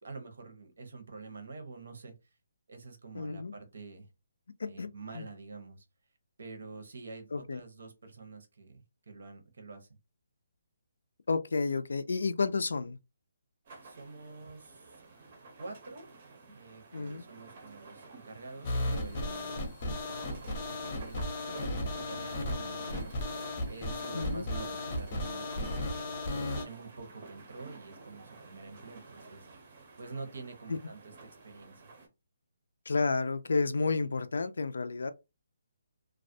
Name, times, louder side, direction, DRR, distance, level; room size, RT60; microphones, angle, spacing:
voice 1, 0.0-2.1 2.7-4.1 4.6-5.8 6.4-9.9 13.8-15.0 15.6-16.1 16.5-23.3 23.6-26.2 26.5-31.9, right 3 dB, 65° right, 0.8 m, -47 dB
voice 2, 3.1-3.5 4.6-5.3 7.3-7.6 11.3-13.0 16.9-17.2 24.1-24.5 30.7-30.8 32.9-35.1, left 4 dB, 80° left, 0.3 m, -31 dB
sound 1, 13.7-32.1, right 3 dB, 30° right, 0.6 m, -52 dB
sound 2, 18.6-26.6, left 1 dB, 25° left, 0.5 m, -35 dB
2.3 x 2.1 x 2.6 m
hypercardioid pair, 170°, 0 cm